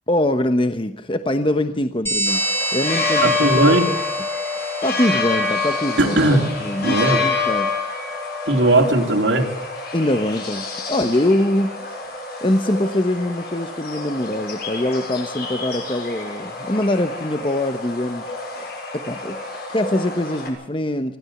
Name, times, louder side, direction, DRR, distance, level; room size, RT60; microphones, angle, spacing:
voice 1, 0.1-3.5 4.8-6.2 6.6-7.8 9.9-12.0 12.4-18.3 18.6-18.7 18.9-21.2, left 1 dB, 30° left, 8 dB, 1.0 m, -23 dB
sound 1, 2.1-6.3, right 1 dB, 10° left, 2.8 m, -27 dB
sound 2, 2.3-20.5, left 4 dB, 55° left, 6.3 m, -27 dB
voice 2, 3.2-3.9 6.0-6.4 6.8-7.2 8.5-9.5, right 2 dB, 80° right, 4 dB, 3.3 m, -17 dB
25.0 x 16.0 x 7.2 m, 0.76 s
head